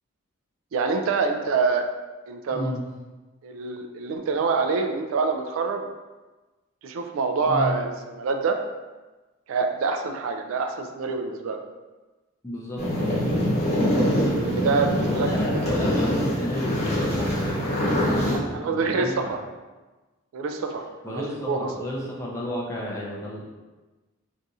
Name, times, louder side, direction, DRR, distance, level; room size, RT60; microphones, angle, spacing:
voice 1, 0.7-1.8 2.3-2.7 3.4-5.9 6.8-8.6 9.5-11.6 14.0-14.1 14.4-15.6 18.5-19.4 20.3-21.7, right 4 dB, 70° right, 5 dB, 0.3 m, -26 dB
voice 2, 2.5-2.8 7.5-7.8 12.4-13.2 15.1-19.3 21.0-23.4, equal, 15° left, -4 dB, 0.5 m, -32 dB
sound 1, 12.8-18.4, equal, 30° left, 0.9 m, -24 dB
2.6 x 2.4 x 4.0 m, 1.2 s
head